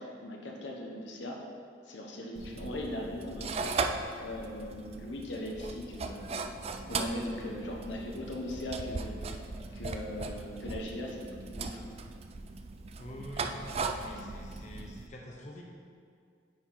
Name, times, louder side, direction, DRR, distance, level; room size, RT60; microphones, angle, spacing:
voice 1, 0.0-1.4 1.9-3.9 4.2-6.5 6.8-9.2 9.7-11.8, left 1 dB, 85° left, 0 dB, 1.0 m, -39 dB
sound 1, 2.4-15.1, right 4 dB, 35° right, 0.3 m, -38 dB
voice 2, 13.0-15.6, left 1 dB, 40° left, -2 dB, 0.9 m, -46 dB
8.9 x 4.5 x 3.8 m, 2.3 s
head